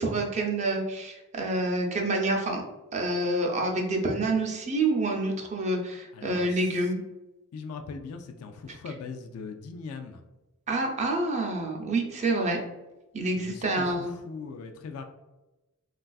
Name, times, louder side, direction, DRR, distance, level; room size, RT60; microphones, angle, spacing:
voice 1, 0.0-2.6 2.9-7.0 10.7-12.6 13.1-14.1, right 2 dB, 30° right, 1 dB, 0.5 m, -27 dB
voice 2, 6.1-6.6 7.5-10.2 13.4-15.0, left 4 dB, 75° left, 6 dB, 0.3 m, -40 dB
3.3 x 2.4 x 2.3 m, 1.0 s
head